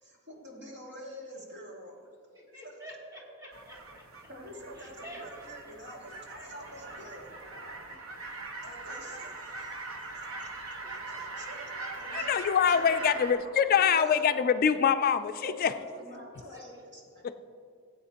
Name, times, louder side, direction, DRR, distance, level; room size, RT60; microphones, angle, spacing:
voice 1, 0.0-2.0 4.3-7.4 8.6-10.5 10.9-11.0 11.4-14.3 14.7-15.0 15.4-17.2, equal, 55° right, -3 dB, 2.3 m, -47 dB
voice 2, 2.3-4.0 4.7-5.7 6.8-6.9 7.2-7.4 10.7-11.4 16.5-16.8, right 1 dB, 15° right, -4 dB, 2.5 m, -49 dB
sound 1, 3.5-13.3, right 3 dB, 90° right, 1.1 m, -41 dB
voice 3, 12.1-15.7, left 7 dB, 45° left, 10 dB, 0.3 m, -24 dB
17.0 x 8.5 x 2.9 m, 2.3 s
head